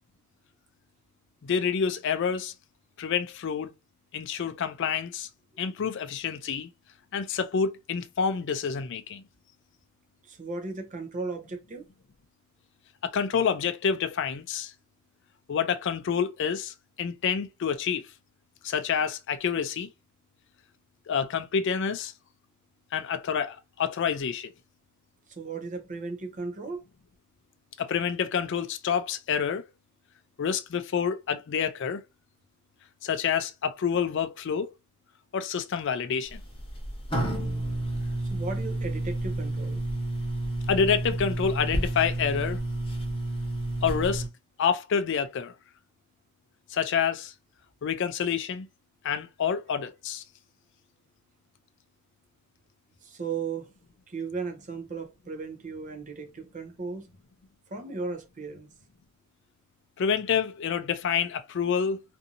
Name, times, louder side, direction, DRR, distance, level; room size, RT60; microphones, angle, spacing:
voice 1, 1.4-2.5 3.0-3.7 4.1-5.3 5.6-6.7 7.1-9.2 13.0-14.7 15.5-18.1 18.6-19.9 21.1-22.1 22.9-24.5 27.8-29.6 30.4-32.0 33.0-34.7 35.3-36.4 40.7-42.6 43.8-44.2 44.6-45.5 46.7-47.3 47.8-48.7 49.0-50.2 60.0-62.0, left 6 dB, 55° left, 0.4 m, -28 dB
voice 2, 10.3-11.9 25.3-26.8 38.2-39.8 53.0-53.7 54.1-57.1 57.7-58.7, right 4 dB, 35° right, 0.6 m, -36 dB
sound 1, 36.3-44.3, right 1 dB, 25° left, 0.9 m, -30 dB
2.6 x 2.6 x 2.6 m
head